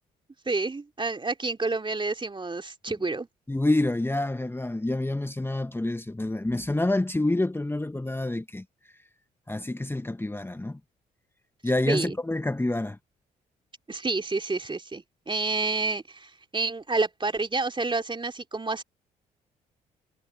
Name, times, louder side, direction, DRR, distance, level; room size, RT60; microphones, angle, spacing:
voice 1, 0.5-3.3 11.9-12.2 13.9-18.8, right 3 dB, 25° right, 2.8 m, -29 dB
voice 2, 3.5-8.6 9.5-10.8 11.6-13.0, left 2 dB, 10° left, 1.4 m, -27 dB
hypercardioid pair, 45°, 20 cm